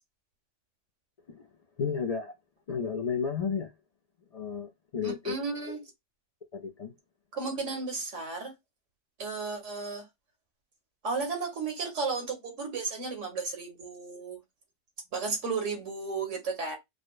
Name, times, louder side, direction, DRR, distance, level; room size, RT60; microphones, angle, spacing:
voice 1, 1.8-2.3 2.7-3.7 4.3-5.4 6.5-6.9, left 6 dB, 50° left, 0.4 m, -32 dB
voice 2, 5.0-5.8 7.3-8.5 9.2-10.0 11.0-14.4 15.1-16.8, right 4 dB, 90° right, 1.6 m, -34 dB
4.9 x 2.0 x 2.3 m
omnidirectional pair, 1.2 m